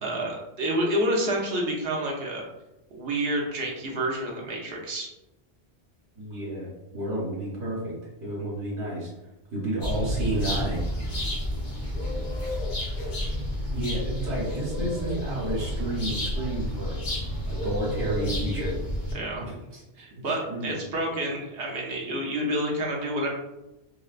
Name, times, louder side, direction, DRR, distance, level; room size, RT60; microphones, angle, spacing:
voice 1, 0.0-2.4 2.9-5.1 19.1-19.5 20.0-23.3, right 1 dB, 65° right, -1 dB, 0.9 m, -29 dB
voice 2, 6.1-7.9 8.2-9.1 9.5-10.8 13.7-17.0 17.5-18.7 19.4-19.8 20.3-21.2, right 1 dB, 90° right, -8 dB, 1.4 m, -31 dB
sound 1, 9.8-19.1, left 1 dB, 55° left, 0.9 m, -30 dB
4.0 x 2.1 x 2.4 m, 0.95 s
omnidirectional pair, 1.1 m